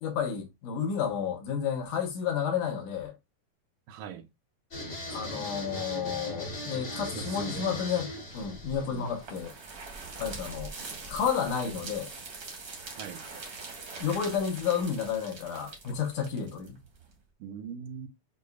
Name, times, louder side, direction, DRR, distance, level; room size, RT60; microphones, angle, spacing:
voice 1, 0.0-3.1 5.1-9.5 10.2-10.7 11.1-12.1 14.0-16.8, left 7 dB, 70° left, 2.5 m, -31 dB
voice 2, 3.9-4.3 7.0-7.7 8.9-9.1 13.0-13.2 17.4-18.1, right 8 dB, 85° right, 2.1 m, -41 dB
sound 1, 4.7-9.7, left 1 dB, 55° left, 0.8 m, -39 dB
sound 2, 8.3-17.1, right 4 dB, 55° right, 1.0 m, -43 dB
6.8 x 2.5 x 2.3 m
omnidirectional pair, 3.7 m